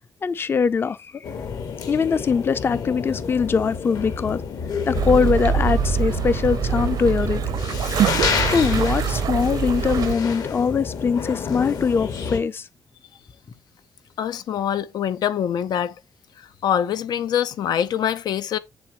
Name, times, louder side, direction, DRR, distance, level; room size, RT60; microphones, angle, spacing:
voice 1, 0.2-1.3 1.9-4.4 4.9-7.4 8.5-12.7, left 5 dB, 35° left, 0.5 m, -22 dB
sound 1, 1.2-12.4, left 6 dB, 70° left, 2.0 m, -29 dB
sound 2, 5.0-10.1, right 8 dB, 70° right, 0.7 m, -24 dB
voice 2, 14.2-15.9 16.6-18.6, left 9 dB, 90° left, 0.7 m, -24 dB
8.0 x 7.1 x 3.0 m
wide cardioid pair, 150°, 7 cm